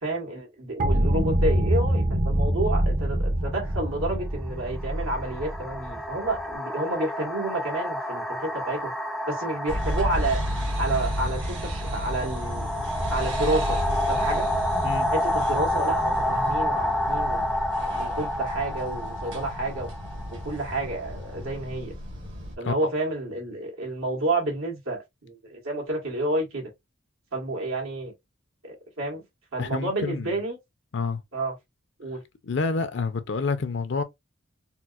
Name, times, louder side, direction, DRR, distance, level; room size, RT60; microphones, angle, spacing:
voice 1, 0.0-8.9 9.3-10.4 10.8-12.7 13.1-13.8 14.1-14.4 15.1-17.5 18.0-19.9 20.4-21.9 22.6-26.7 27.3-28.1 28.6-29.2 29.5-30.6 31.3-31.5 32.0-32.2, right 2 dB, 85° right, 1.7 m, -30 dB
sound 1, 0.8-6.5, right 1 dB, 40° right, 0.6 m, -25 dB
sound 2, 3.5-3.7 4.6-21.3, left 1 dB, ahead, 0.4 m, -29 dB
sound 3, 9.7-22.6, equal, 60° right, 1.3 m, -32 dB
voice 2, 29.6-30.3 30.9-31.2 32.4-34.0, left 4 dB, 60° left, 0.5 m, -28 dB
4.3 x 2.0 x 2.4 m
head